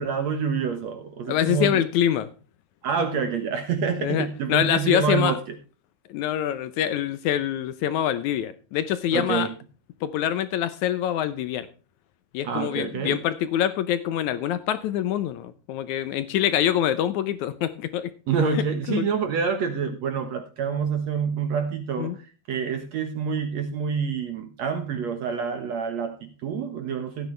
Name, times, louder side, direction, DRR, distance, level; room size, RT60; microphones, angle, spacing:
voice 1, 0.0-1.8 2.8-5.4 9.1-9.5 12.4-13.2 18.3-27.3, right 6 dB, 60° right, 7 dB, 2.0 m, -27 dB
voice 2, 1.3-2.3 4.0-5.3 6.1-9.5 10.0-11.7 12.3-18.1 18.5-18.6 18.9-19.1 22.0-22.2, left 10 dB, 80° left, 13 dB, 1.7 m, -25 dB
16.0 x 9.3 x 3.2 m, 0.36 s
omnidirectional pair, 4.3 m